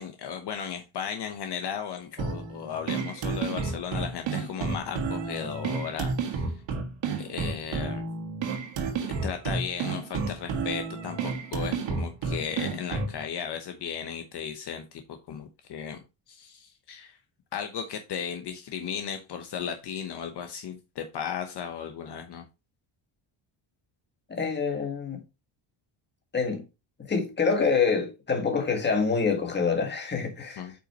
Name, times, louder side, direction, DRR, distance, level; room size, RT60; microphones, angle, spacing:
voice 1, 0.0-6.4 7.2-8.0 9.2-16.0 16.3-17.2 17.5-22.4 30.6-30.7, left 8 dB, 55° left, 1.0 m, -35 dB
sound 1, 2.2-13.2, right 4 dB, 60° right, 1.7 m, -31 dB
voice 2, 24.3-25.2 26.3-26.6 27.1-30.7, left 5 dB, 20° left, 1.8 m, -26 dB
8.4 x 5.7 x 3.0 m
cardioid pair, 175°, 49 cm